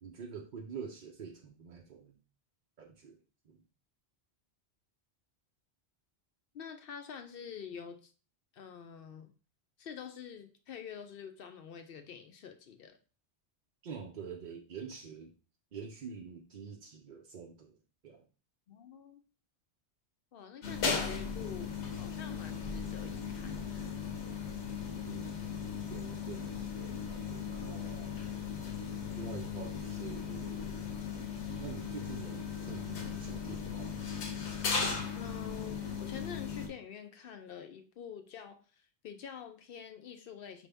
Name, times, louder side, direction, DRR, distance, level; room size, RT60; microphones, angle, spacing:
voice 1, 0.0-2.2 2.8-3.6 13.8-15.3 15.7-18.3 25.0-28.2 29.1-30.9 31.6-34.1, right 6 dB, 55° right, 1 dB, 0.6 m, -46 dB
voice 2, 6.5-8.1 8.5-9.3 9.8-13.0 18.7-19.2 20.3-23.9 35.2-40.7, left 7 dB, 65° left, 7 dB, 0.7 m, -47 dB
sound 1, 20.6-36.7, left 6 dB, 85° left, 1.1 m, -37 dB
5.0 x 2.6 x 3.4 m, 0.35 s
omnidirectional pair, 1.1 m